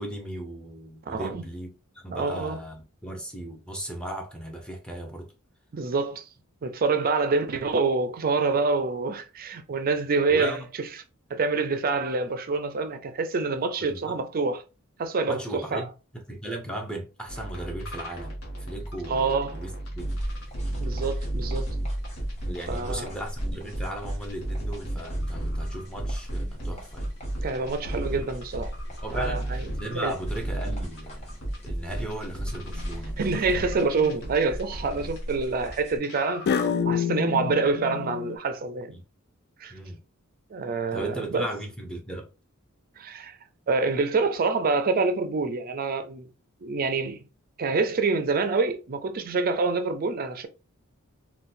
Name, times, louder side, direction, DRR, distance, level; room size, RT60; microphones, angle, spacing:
voice 1, 0.0-5.3 10.3-10.7 13.8-14.2 15.3-20.1 22.4-27.1 29.0-33.8 38.9-39.0 39.7-40.0 40.9-42.3, right 1 dB, 5° left, 0.7 m, -37 dB
voice 2, 1.1-1.4 2.1-2.6 5.7-6.3 6.6-10.9 11.3-14.6 15.0-15.8 19.1-19.6 20.8-21.7 22.7-23.1 27.4-28.7 29.1-30.1 33.2-38.9 39.6-39.7 40.5-41.5 43.0-43.4 43.7-46.3 46.6-47.3 47.6-50.5, right 4 dB, 45° right, 0.5 m, -26 dB
sound 1, 17.3-23.0 23.4-35.8 36.0-36.5, right 1 dB, 65° left, 1.1 m, -33 dB
sound 2, 20.0-36.0, equal, 35° left, 1.2 m, -40 dB
sound 3, 32.6-33.0 33.7-34.2 36.5-38.4, left 7 dB, 50° left, 0.3 m, -29 dB
3.8 x 2.3 x 2.6 m
head